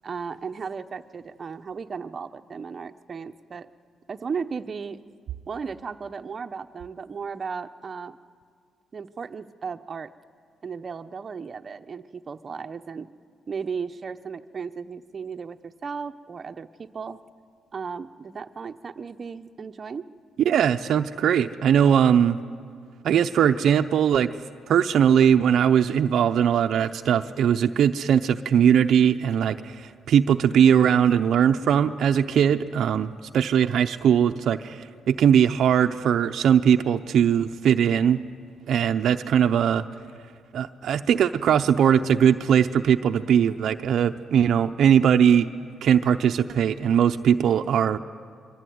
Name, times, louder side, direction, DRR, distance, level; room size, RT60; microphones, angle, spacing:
voice 1, 0.0-3.7 4.1-5.0 5.5-8.2 8.9-10.1 10.6-13.1 13.5-17.2 17.7-20.1, right 5 dB, 40° right, 7 dB, 0.9 m, -35 dB
voice 2, 20.4-22.4 23.0-24.3 24.7-38.2 38.7-39.8 40.5-45.5 45.8-48.0, right 8 dB, 70° right, 7 dB, 0.7 m, -20 dB
24.5 x 23.5 x 9.5 m, 2.1 s
cardioid pair, 90°, 0 cm